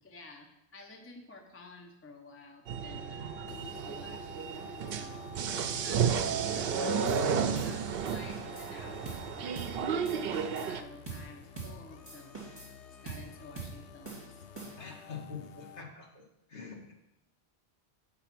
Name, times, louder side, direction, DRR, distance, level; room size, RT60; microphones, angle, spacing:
voice 1, 0.0-4.3 4.7-5.3 5.8-9.5 9.8-12.4 12.9-14.5, left 2 dB, 15° left, 2 dB, 0.6 m, -52 dB
sound 1, 2.7-10.8, right 6 dB, 65° right, 0.7 m, -32 dB
sound 2, 3.5-15.8, left 8 dB, 90° left, 0.9 m, -53 dB
sound 3, 7.1-7.3 7.5-7.8 8.0-8.7 9.0-9.3 9.5-9.8 10.0-10.7 11.1-11.3 11.6-11.8 12.1-12.7 13.1-13.3 13.6-13.8 14.0-15.0, right 4 dB, 25° right, 2.4 m, -43 dB
voice 2, 14.8-16.2 16.5-16.9, left 5 dB, 50° left, 0 dB, 1.4 m, -44 dB
8.2 x 4.1 x 5.9 m, 0.89 s
omnidirectional pair, 1.1 m